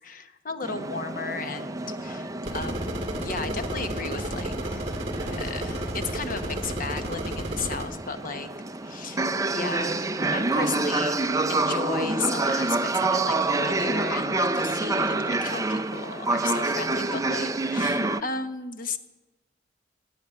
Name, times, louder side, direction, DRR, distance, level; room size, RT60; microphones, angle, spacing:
voice 1, 0.0-4.9 5.2-8.5 8.8-9.3 9.5-19.0, left 4 dB, 50° left, 10 dB, 1.0 m, -35 dB
sound 1, 0.6-18.2, right 2 dB, 20° right, 0.6 m, -28 dB
sound 2, 2.5-7.9, right 1 dB, 35° right, 2.0 m, -32 dB
16.0 x 8.9 x 9.4 m, 1.1 s
head